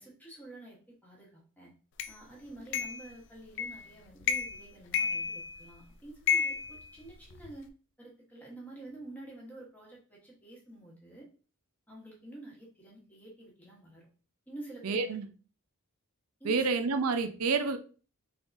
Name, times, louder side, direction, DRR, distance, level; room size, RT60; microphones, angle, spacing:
voice 1, 0.0-1.7 2.1-7.7 8.0-11.3 11.9-14.1 14.5-15.2 16.4-16.6, right 2 dB, 5° left, -3 dB, 1.2 m, -49 dB
sound 1, 2.0-2.1 2.7-3.1 3.6-3.9 4.2-4.6 4.9-5.7 6.3-7.5, left 6 dB, 55° left, 0.4 m, -31 dB
voice 2, 14.8-15.3 16.5-17.8, right 4 dB, 80° right, 8 dB, 0.5 m, -28 dB
3.7 x 3.4 x 2.6 m, 0.38 s
head